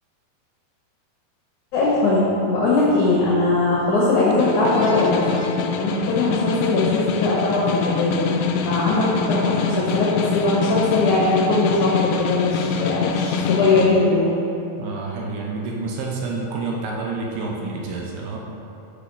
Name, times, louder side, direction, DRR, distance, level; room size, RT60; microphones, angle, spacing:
voice 1, 1.7-5.1 5.8-8.4 8.7-14.3, left 3 dB, 70° left, -6 dB, 1.9 m, -20 dB
sound 1, 4.1-6.9, left 2 dB, 35° left, 1.2 m, -29 dB
Snare drum, 4.3-14.0, left 5 dB, 90° left, 1.9 m, -25 dB
voice 2, 14.8-18.4, right 3 dB, 75° right, -2 dB, 2.4 m, -28 dB
6.5 x 5.7 x 5.4 m, 2.8 s
omnidirectional pair, 4.6 m